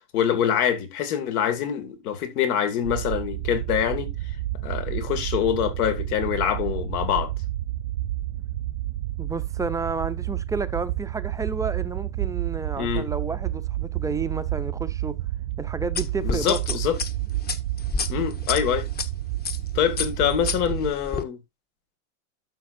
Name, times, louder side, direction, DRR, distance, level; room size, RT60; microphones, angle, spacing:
voice 1, 0.1-4.1 4.6-7.3 12.8-13.0 16.2-17.0 18.1-18.9 19.7-21.4, left 9 dB, 80° left, 2.3 m, -25 dB
sound 1, 2.8-20.9, right 14 dB, 85° right, 0.9 m, -30 dB
voice 2, 9.2-15.2 15.6-16.8, right 4 dB, 10° right, 0.4 m, -31 dB
sound 2, 16.0-19.1 19.4-19.7 20.0-21.2, left 5 dB, 20° left, 0.9 m, -30 dB
12.0 x 6.4 x 2.6 m
supercardioid pair, 130°, 44 cm